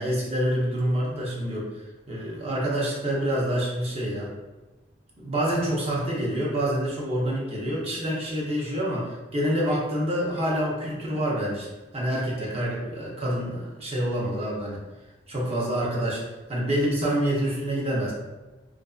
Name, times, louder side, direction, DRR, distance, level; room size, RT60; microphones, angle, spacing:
voice 1, 0.0-1.7 2.1-4.3 5.2-11.7 11.9-14.8 15.3-16.2 16.5-18.1, equal, 35° right, -4 dB, 0.7 m, -27 dB
2.4 x 2.4 x 2.3 m, 1.2 s
head